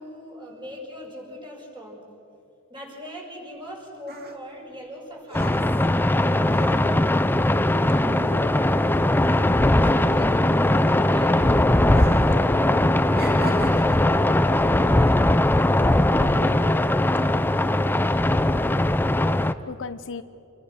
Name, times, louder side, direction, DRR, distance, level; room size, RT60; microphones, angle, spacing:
voice 1, 0.0-2.1 2.7-7.1 9.7-12.5 13.0-15.3, equal, 20° right, -2 dB, 6.6 m, -41 dB
sound 1, 3.6-8.9 9.2-11.3 11.9-12.4 12.7-14.2 14.9-15.1, right 2 dB, 45° right, 2.0 m, -41 dB
sound 2, 5.3-19.5, left 1 dB, 10° left, 0.6 m, -20 dB
voice 2, 8.0-8.6 13.4-13.7 16.2-16.9 19.7-20.2, left 4 dB, 60° left, 11 dB, 0.7 m, -38 dB
27.5 x 22.5 x 6.5 m, 2.6 s
head